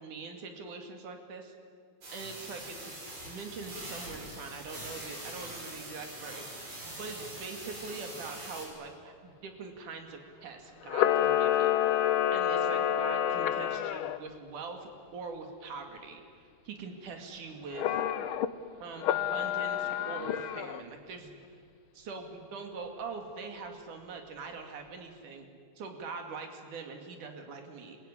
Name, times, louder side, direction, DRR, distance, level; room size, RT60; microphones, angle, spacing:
voice 1, 0.0-1.5 2.1-3.0 3.3-6.5 6.9-16.2 16.7-18.0 18.8-21.4 21.9-25.5 25.8-28.0, right 4 dB, 85° right, 4 dB, 3.8 m, -43 dB
sound 1, 2.0-8.7, right 1 dB, 60° right, 7.7 m, -43 dB
Camera, 10.9-14.2 17.7-18.5 19.0-20.8, left 11 dB, 85° left, 1.1 m, -28 dB
25.5 x 22.0 x 9.9 m, 2.2 s
omnidirectional pair, 3.5 m